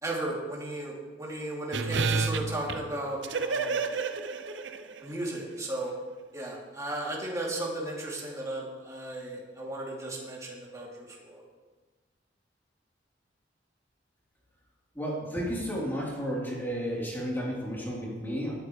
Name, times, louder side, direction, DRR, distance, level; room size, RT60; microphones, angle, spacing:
voice 1, 0.0-3.9 5.0-5.9 6.3-11.4, right 1 dB, 20° right, -4 dB, 2.9 m, -35 dB
sound 1, 1.7-5.2 5.5-5.6, right 4 dB, 80° right, 0.8 m, -30 dB
voice 2, 15.0-18.5, equal, 10° left, -6 dB, 3.6 m, -32 dB
19.0 x 12.5 x 3.3 m, 1.3 s
head